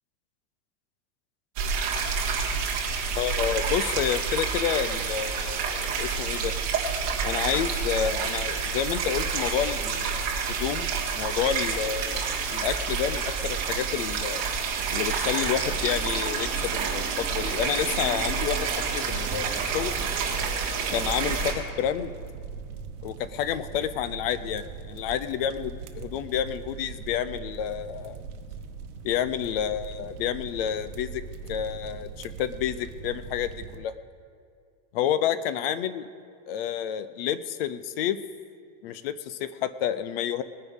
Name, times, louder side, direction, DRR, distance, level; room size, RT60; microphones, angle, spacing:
sound 1, 1.6-21.5, right 5 dB, 35° right, 1.9 m, -28 dB
voice 1, 3.1-6.5 7.2-14.4 14.9-20.0 20.9-22.1 23.0-28.2 29.0-31.2 31.5-33.9 34.9-36.1 36.5-38.2 38.8-40.4, left 9 dB, 40° left, 13 dB, 0.4 m, -29 dB
sound 2, 21.1-33.8, right 5 dB, 75° right, 1.2 m, -41 dB
20.0 x 10.0 x 3.5 m, 2.2 s
supercardioid pair, 180°, 45 cm